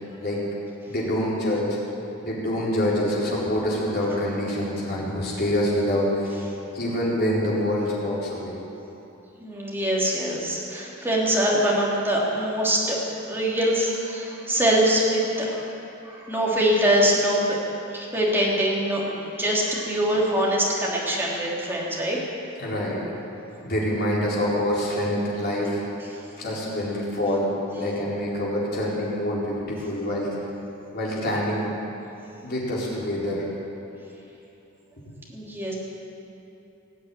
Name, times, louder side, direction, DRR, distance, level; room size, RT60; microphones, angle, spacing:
voice 1, 0.9-1.8 2.2-6.3 6.7-8.6 22.6-23.0 23.6-25.8 26.4-30.3 30.9-31.7 32.4-33.4, left 1 dB, 50° left, -6 dB, 4.2 m, -26 dB
voice 2, 9.4-13.0 13.3-15.7 16.0-17.6 17.9-22.2 35.3-35.7, equal, 10° right, -5 dB, 3.0 m, -23 dB
19.5 x 7.7 x 9.0 m, 2.9 s
head